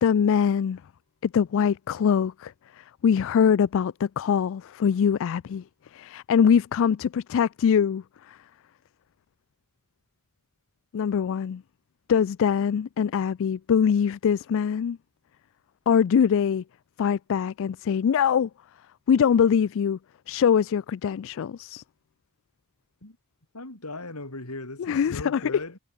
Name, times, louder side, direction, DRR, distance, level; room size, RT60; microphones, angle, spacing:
voice 1, 0.0-0.8 1.2-8.4 10.9-11.6 12.1-15.0 15.9-16.6 17.0-18.5 19.1-20.0 20.3-21.8 24.8-25.4, left 7 dB, 60° left, 0.3 m, -23 dB
voice 2, 23.5-25.8, left 2 dB, 80° left, 5.1 m, -38 dB
head